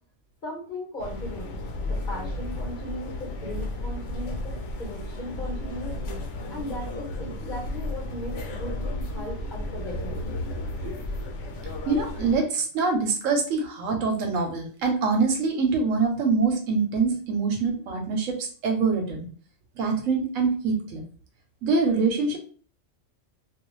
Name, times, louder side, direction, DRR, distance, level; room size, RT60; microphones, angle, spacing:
voice 1, 0.4-6.0 6.5-10.3, left 1 dB, 40° left, -2 dB, 1.0 m, -37 dB
sound 1, 1.0-12.4, left 1 dB, 70° left, 0.9 m, -33 dB
voice 2, 11.9-19.3 19.8-21.0 21.6-22.4, right 4 dB, 90° right, 3 dB, 1.1 m, -24 dB
2.4 x 2.4 x 3.1 m, 0.42 s
omnidirectional pair, 1.3 m